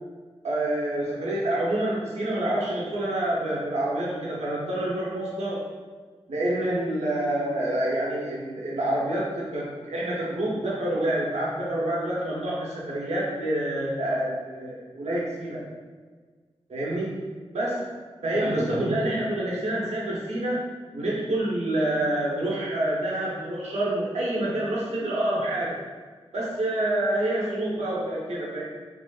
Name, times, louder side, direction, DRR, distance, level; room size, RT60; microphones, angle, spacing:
voice 1, 0.4-5.6 6.3-15.6 16.7-17.3 17.5-17.9 18.2-20.6 20.9-25.8 26.3-28.6, right 1 dB, 85° right, -5 dB, 0.8 m, -27 dB
3.7 x 2.5 x 2.3 m, 1.5 s
cardioid pair, 45°, 11 cm